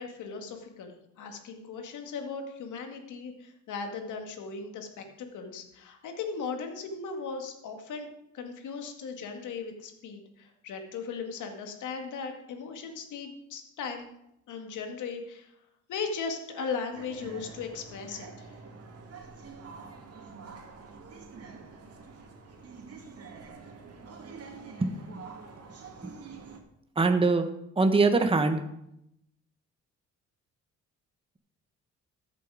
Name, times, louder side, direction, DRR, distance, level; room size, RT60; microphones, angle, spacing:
voice 1, 0.0-8.1 8.3-14.1 14.5-15.5 15.9-18.5, left 5 dB, 80° left, 4 dB, 2.2 m, -37 dB
sound 1, 16.9-26.6, right 4 dB, 55° right, 2.4 m, -46 dB
voice 2, 27.0-27.5 27.8-28.6, right 3 dB, 20° right, 7 dB, 1.1 m, -23 dB
14.0 x 8.3 x 4.9 m, 0.81 s
cardioid pair, 90°, 30 cm